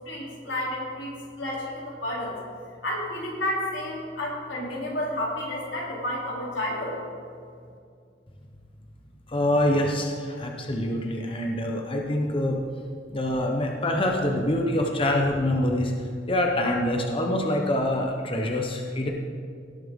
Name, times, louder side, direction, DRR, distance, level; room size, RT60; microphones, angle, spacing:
voice 1, 0.1-2.3 2.8-7.0, left 1 dB, 90° left, -4 dB, 3.1 m, -31 dB
voice 2, 9.3-12.6 13.1-15.9 16.3-19.1, left 1 dB, 30° left, 1 dB, 0.8 m, -25 dB
18.0 x 7.2 x 3.7 m, 2.3 s
head